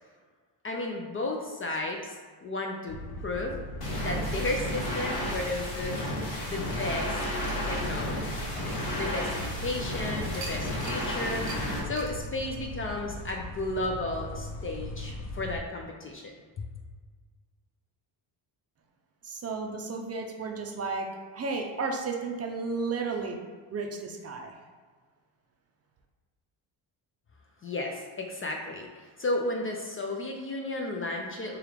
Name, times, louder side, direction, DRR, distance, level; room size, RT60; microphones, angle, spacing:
voice 1, 0.6-3.6 4.0-6.0 6.4-7.2 7.6-8.4 8.9-11.5 11.9-16.7 27.6-31.6, left 2 dB, 30° left, 1 dB, 0.4 m, -33 dB
sound 1, 2.9-15.6, equal, 70° left, 0.6 m, -38 dB
sound 2, 3.8-11.8, left 1 dB, 55° left, 1.3 m, -33 dB
sound 3, 7.2-9.6 10.3-11.1 11.5-11.6 11.9-12.2, right 3 dB, 80° right, 0.9 m, -44 dB
voice 2, 19.2-21.1 21.3-23.4 23.7-24.5, right 4 dB, 35° right, 2 dB, 0.5 m, -33 dB
4.7 x 2.4 x 3.3 m, 1.5 s
cardioid pair, 110°, 44 cm